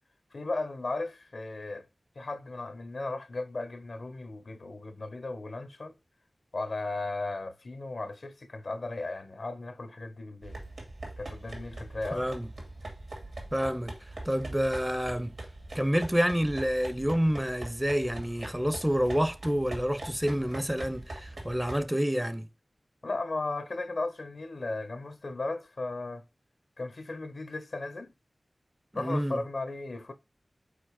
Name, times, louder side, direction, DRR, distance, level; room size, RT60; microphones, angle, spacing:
voice 1, 0.3-1.9 2.2-5.9 6.5-10.6 11.2-12.3 23.0-26.2 26.8-28.1 28.9-30.1, left 2 dB, 75° left, 0.9 m, -36 dB
sound 1, 10.4-21.8, right 2 dB, 80° right, 2.2 m, -42 dB
voice 2, 12.1-12.5 13.5-15.3 15.7-22.5 28.9-29.4, equal, 10° right, 0.6 m, -28 dB
5.3 x 4.2 x 4.7 m
wide cardioid pair, 80°, 0 cm